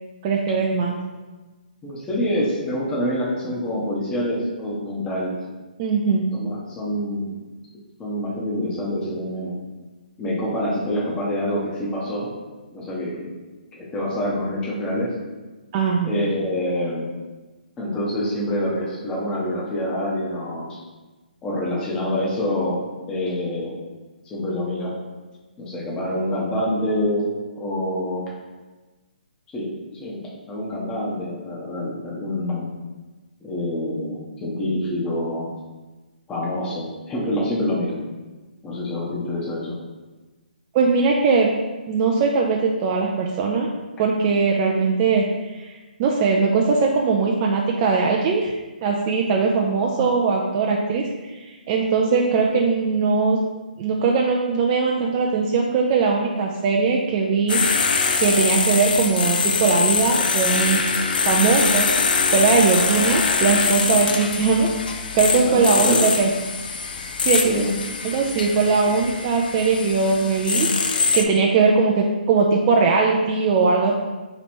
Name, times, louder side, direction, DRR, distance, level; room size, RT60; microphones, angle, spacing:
voice 1, 0.2-0.9 5.8-6.2 15.7-16.1 40.7-41.5 41.9-43.7 44.0-45.2 45.5-45.7 46.0-48.5 48.8-53.4 53.8-60.8 61.2-61.9 62.3-64.7 65.1-66.3 67.2-67.5 68.0-73.9, right 4 dB, 30° right, -1 dB, 0.3 m, -20 dB
voice 2, 1.8-5.3 6.3-7.3 8.0-9.6 10.2-12.3 12.7-13.3 13.7-15.1 16.1-17.1 17.8-20.8 21.4-22.8 23.1-23.7 24.2-24.9 25.6-28.3 29.5-29.7 30.0-30.2 30.5-32.7 33.4-35.5 36.3-38.0 38.6-39.8 65.4-66.0 67.5-67.7, left 1 dB, 15° left, -6 dB, 0.8 m, -26 dB
sound 1, 57.5-71.2, left 4 dB, 65° left, 0.4 m, -23 dB
3.1 x 3.0 x 4.3 m, 1.2 s
hypercardioid pair, 150°, 5 cm